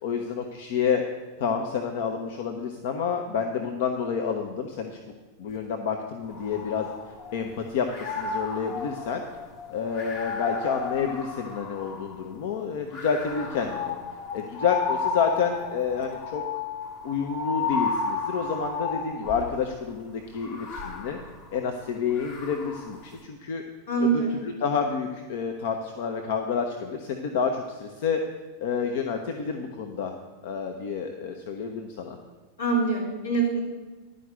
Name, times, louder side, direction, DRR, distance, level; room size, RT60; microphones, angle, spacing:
voice 1, 0.0-1.0 1.4-5.0 5.4-6.9 7.3-9.2 9.7-13.9 14.3-16.6 17.0-21.2 21.5-23.6 24.0-24.2 24.6-28.2 28.6-30.1 30.4-32.2, left 6 dB, 50° left, 4 dB, 0.8 m, -29 dB
sound 1, 6.3-7.5 7.8-12.2 12.9-19.6 20.4-23.0, left 5 dB, 35° left, 1.4 m, -33 dB
voice 2, 23.9-24.3 32.6-33.6, right 4 dB, 75° left, -4 dB, 3.6 m, -24 dB
11.0 x 5.1 x 8.0 m, 1.3 s
figure-of-eight pair, 90°, 0 cm